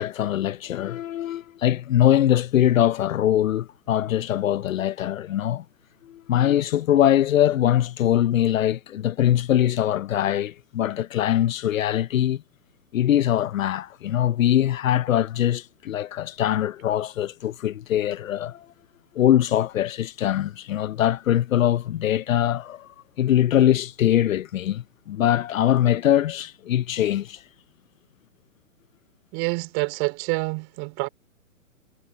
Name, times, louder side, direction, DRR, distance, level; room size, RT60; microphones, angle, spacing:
voice 1, 0.0-5.6 6.0-12.4 12.9-18.7 19.1-22.9 23.2-27.4, left 11 dB, 65° left, 0.7 m, -22 dB
voice 2, 29.3-31.1, right 28 dB, 30° right, 3.6 m, -27 dB
hypercardioid pair, 150°, 43 cm